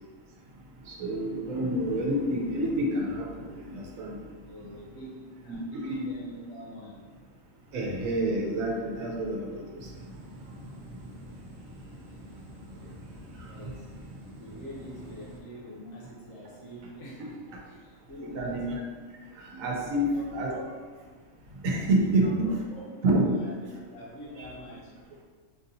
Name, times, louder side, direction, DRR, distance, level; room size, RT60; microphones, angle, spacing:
voice 1, 1.0-3.3 3.7-4.1 5.5-6.0 7.7-9.5 18.2-18.8 19.4-20.1 20.3-20.5 21.6-22.5 23.0-23.3 24.4-24.5, right 1 dB, 85° right, -1 dB, 1.1 m, -27 dB
voice 2, 4.4-7.0 12.1-12.5 13.4-14.0 14.4-18.6 19.9-20.8 22.0-24.9, equal, 70° left, -5 dB, 1.1 m, -45 dB
sound 1, 9.8-15.4, right 1 dB, 50° right, 0.7 m, -46 dB
4.3 x 2.7 x 2.7 m, 1.5 s
omnidirectional pair, 1.4 m